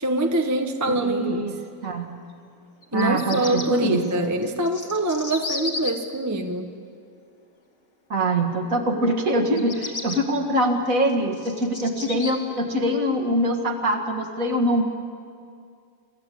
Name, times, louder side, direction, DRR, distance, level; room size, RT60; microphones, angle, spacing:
voice 1, 0.0-1.6 2.9-6.7, right 1 dB, 15° right, 5 dB, 0.7 m, -24 dB
voice 2, 0.9-1.6 1.8-2.1 2.9-4.3 8.1-14.8, right 1 dB, 40° right, 4 dB, 2.1 m, -23 dB
Bird vocalization bird call bird song, 2.8-3.7 4.4-5.9 9.4-10.2 10.9-12.3, left 3 dB, 35° left, 2.2 m, -33 dB
27.5 x 15.0 x 8.5 m, 2.3 s
omnidirectional pair, 2.3 m